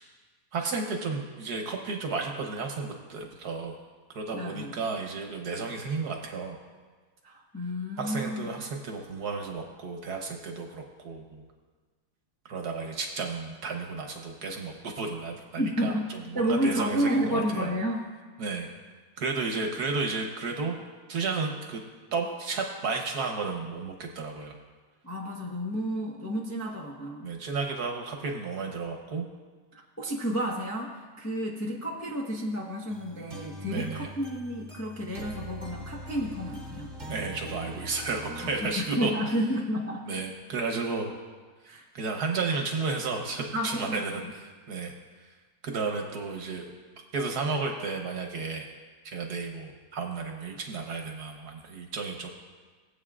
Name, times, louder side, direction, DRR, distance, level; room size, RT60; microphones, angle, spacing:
voice 1, 0.5-3.8 4.1-6.6 8.0-11.4 12.4-17.8 18.4-18.7 19.2-20.8 21.1-21.8 22.1-24.5 27.2-29.2 33.7-34.1 37.1-39.1 40.1-41.1 41.6-44.9 45.2-45.3 45.6-46.6 47.1-48.7 49.0-52.3, right 4 dB, 55° right, 2 dB, 1.4 m, -33 dB
voice 2, 4.3-4.7 7.2-8.4 15.6-16.1 16.3-18.0 25.0-27.3 29.7-36.9 38.6-40.1 41.6-41.8 43.5-44.0 44.2-44.3, equal, 25° left, -4 dB, 0.3 m, -31 dB
sound 1, 32.9-38.7, equal, 25° right, 1.0 m, -42 dB
20.0 x 8.0 x 2.4 m, 1.4 s
omnidirectional pair, 2.3 m